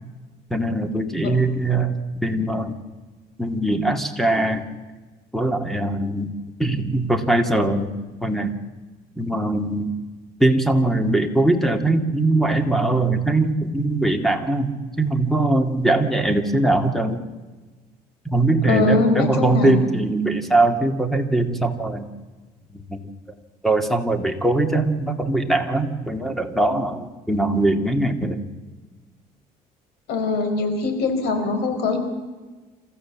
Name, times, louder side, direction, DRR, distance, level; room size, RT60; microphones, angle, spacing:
voice 1, 0.5-1.9 2.2-2.8 3.4-4.6 5.3-6.3 6.6-7.9 8.2-8.5 9.2-9.9 10.4-14.7 15.0-17.2 18.3-22.1 22.7-23.0 23.6-28.5, right 2 dB, ahead, 7 dB, 2.3 m, -21 dB
voice 2, 18.7-19.8 30.1-32.0, left 4 dB, 80° left, 6 dB, 4.4 m, -22 dB
27.5 x 14.5 x 7.5 m, 1.3 s
cardioid pair, 110°, 17 cm